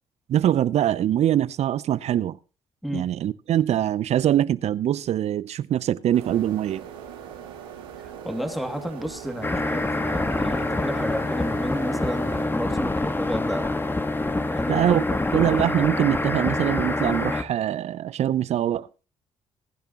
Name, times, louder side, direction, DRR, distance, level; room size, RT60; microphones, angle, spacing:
voice 1, 0.3-2.4 2.9-6.8 14.7-15.0 15.3-18.9, right 11 dB, 60° right, 0.6 m, -23 dB
sound 1, 6.1-12.5, right 8 dB, 90° right, 2.1 m, -40 dB
voice 2, 8.2-13.7 14.4-15.3, equal, ahead, 2.4 m, -32 dB
sound 2, 9.4-17.4, left 2 dB, 15° left, 1.4 m, -26 dB
21.5 x 10.5 x 2.9 m
hypercardioid pair, 50°, 12 cm